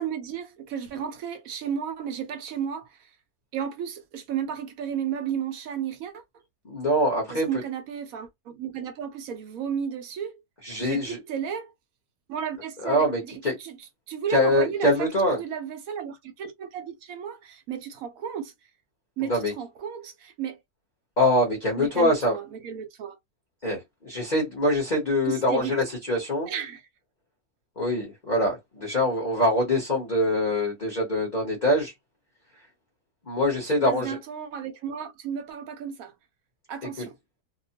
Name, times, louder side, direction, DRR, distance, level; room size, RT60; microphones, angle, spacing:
voice 1, 0.0-3.1 3.5-6.2 7.3-10.4 10.8-11.7 12.3-13.8 14.1-18.5 19.2-20.6 21.8-23.2 25.3-25.7 26.5-26.8 33.6-36.1 36.7-37.2, right 8 dB, 70° right, 0.9 m, -33 dB
voice 2, 6.6-7.5 10.6-11.2 12.8-13.6 14.3-15.4 19.3-19.5 21.2-22.4 23.6-26.5 27.8-31.9 33.2-34.2 37.0-37.1, left 1 dB, 35° left, 0.8 m, -24 dB
2.8 x 2.1 x 2.7 m
omnidirectional pair, 1.8 m